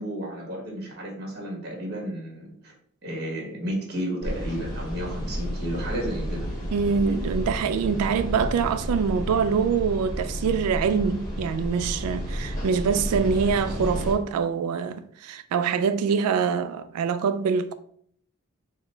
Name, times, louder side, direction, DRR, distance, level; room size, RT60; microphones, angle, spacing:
voice 1, 0.0-2.7 3.0-6.5, equal, 45° right, 1.4 m, -32 dB
sound 1, 4.2-14.1, equal, 15° left, 1.2 m, -32 dB
voice 2, 6.7-17.7, right 6 dB, 85° right, 0.3 m, -24 dB
4.7 x 2.2 x 4.3 m
head